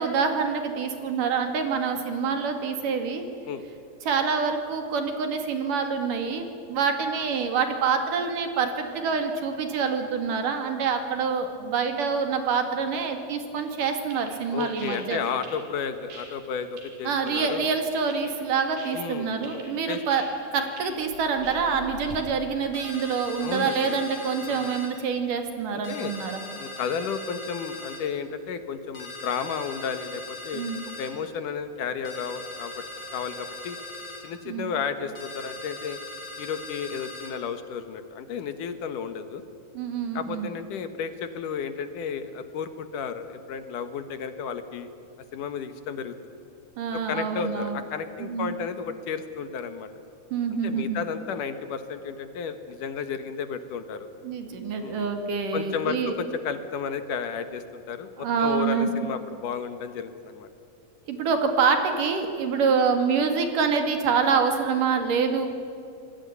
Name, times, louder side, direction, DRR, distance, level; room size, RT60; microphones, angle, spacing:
voice 1, 0.0-3.2 4.0-15.2 17.1-20.2 20.5-26.4 30.5-30.8 34.5-34.7 39.7-40.5 46.8-47.8 48.2-48.5 50.3-51.0 54.2-56.2 58.2-58.9 61.1-65.5, right 5 dB, 70° right, 6 dB, 3.8 m, -26 dB
sound 1, 13.6-22.2, right 1 dB, 90° right, 6.1 m, -45 dB
voice 2, 14.5-17.7 18.9-20.0 23.4-24.0 24.5-24.8 25.7-26.1 26.6-30.6 31.0-32.8 33.1-33.8 34.2-36.0 36.4-39.4 40.1-44.9 45.3-46.1 46.9-49.9 50.6-54.1 54.8-55.1 55.5-60.5, left 6 dB, 70° left, 10 dB, 2.8 m, -33 dB
sound 2, 22.7-24.9 25.8-28.0 28.9-31.1 32.1-34.2 35.2-37.3, left 2 dB, 30° left, 5.3 m, -40 dB
26.5 x 20.0 x 9.6 m, 2.6 s
omnidirectional pair, 4.0 m